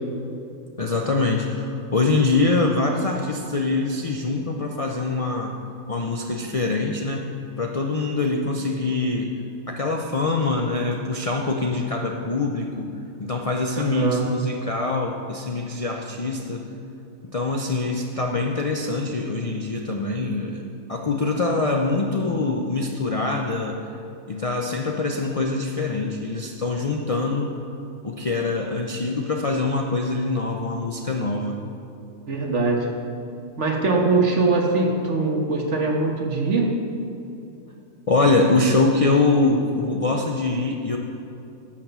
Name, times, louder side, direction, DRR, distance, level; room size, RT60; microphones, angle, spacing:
voice 1, 0.8-5.6 5.9-9.4 9.7-16.7 17.3-20.6 20.9-23.8 24.3-27.6 28.0-31.6 38.1-41.0, left 3 dB, 45° left, 1 dB, 0.5 m, -24 dB
voice 2, 13.8-14.3 32.3-32.9 33.6-36.7, right 3 dB, 60° right, 1 dB, 1.5 m, -22 dB
10.5 x 6.0 x 6.8 m, 2.8 s
omnidirectional pair, 1.4 m